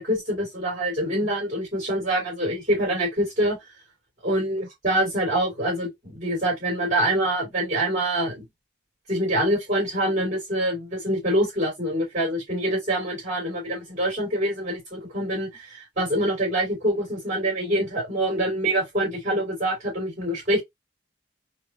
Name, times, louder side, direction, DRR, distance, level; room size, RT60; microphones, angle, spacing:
voice 1, 0.0-3.6 4.2-8.4 9.1-20.6, right 1 dB, 35° right, 2.7 m, -25 dB
4.4 x 2.9 x 2.3 m
head